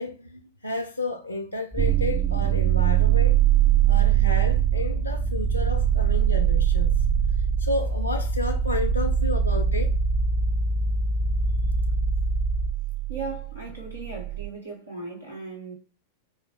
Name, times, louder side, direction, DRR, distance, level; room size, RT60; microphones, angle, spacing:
voice 1, 0.0-3.4 3.9-7.3 7.6-9.9, left 2 dB, 85° left, 0.4 m, -31 dB
sound 1, 1.7-12.7, left 1 dB, 10° right, 0.7 m, -28 dB
sound 2, 1.8-14.5, right 16 dB, 35° right, 0.4 m, -24 dB
voice 2, 13.1-15.7, right 3 dB, 85° right, 1.5 m, -37 dB
5.1 x 2.3 x 3.2 m
figure-of-eight pair, 90°, 0 cm